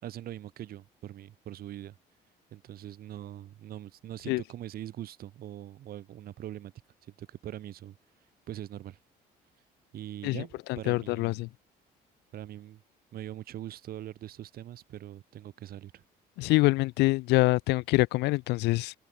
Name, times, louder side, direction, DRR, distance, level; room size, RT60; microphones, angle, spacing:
voice 1, 0.0-2.0 2.5-6.7 7.0-8.0 8.5-9.0 9.9-11.4 12.3-12.8 13.1-16.0, right 12 dB, 65° right, 2.4 m, -42 dB
voice 2, 10.7-11.5 16.4-18.9, left 21 dB, 85° left, 0.6 m, -25 dB
open air
cardioid pair, 110°, 17 cm